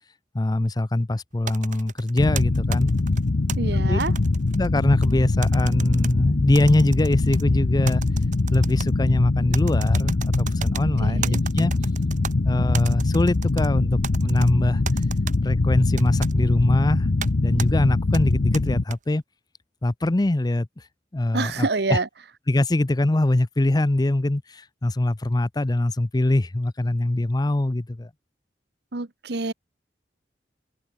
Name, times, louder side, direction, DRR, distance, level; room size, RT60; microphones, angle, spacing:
voice 1, 0.3-2.9 3.9-4.0 4.6-8.0 8.5-11.7 12.4-14.8 15.4-17.1 17.4-19.2 19.8-20.7 21.1-22.0 22.5-28.1, left 1 dB, 25° left, 0.6 m, -23 dB
sound 1, 1.5-3.6 4.0-5.1 5.4-6.1 6.6-7.4 7.9-8.9 9.5-10.8 11.2-12.3 12.7-13.7 14.0-14.5 14.9-15.4 16.0-16.3 17.2-17.3 17.6-17.7 18.1-19.0, right 7 dB, 45° right, 0.9 m, -35 dB
sound 2, 2.2-18.8, left 2 dB, 65° left, 0.7 m, -23 dB
voice 2, 3.6-4.1 11.0-11.4 21.3-22.1 28.9-29.5, right 3 dB, 65° right, 1.1 m, -26 dB
head